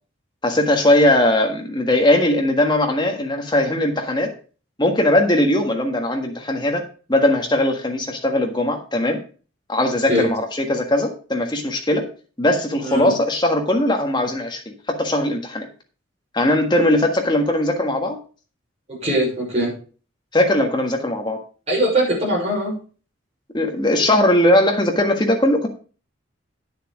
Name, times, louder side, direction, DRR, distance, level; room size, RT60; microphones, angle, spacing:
voice 1, 0.4-4.3 4.8-6.8 7.1-9.2 9.7-12.1 12.4-15.7 16.3-18.2 20.3-21.4 23.5-25.7, left 1 dB, 20° left, 3 dB, 1.6 m, -19 dB
voice 2, 12.8-13.1 18.9-19.7 21.7-22.7, right 1 dB, 30° right, -5 dB, 6.1 m, -21 dB
9.7 x 6.9 x 4.9 m, 0.38 s
head